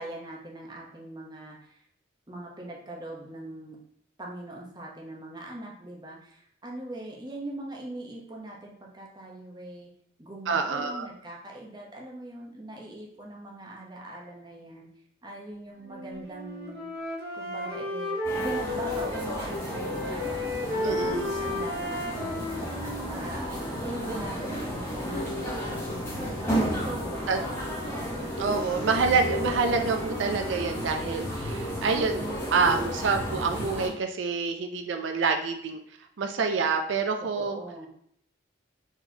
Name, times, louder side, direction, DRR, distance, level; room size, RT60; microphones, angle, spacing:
voice 1, 0.0-1.8 2.3-3.8 4.2-9.9 10.2-14.9 15.2-16.9 17.3-20.4 20.7-22.5 22.8-27.3 37.3-37.9, right 1 dB, 20° right, -2 dB, 0.8 m, -41 dB
voice 2, 10.5-11.1 20.8-21.3 27.3-27.4 27.9-28.0 28.4-35.8 36.2-37.6, right 4 dB, 85° right, 5 dB, 0.4 m, -27 dB
Wind instrument woodwind instrument, 15.8-19.4 19.7-23.7, left 1 dB, 55° right, 0.9 m, -33 dB
sound 1, 18.2-33.9, equal, 15° left, 1.3 m, -32 dB
4.4 x 3.9 x 2.8 m, 0.67 s
head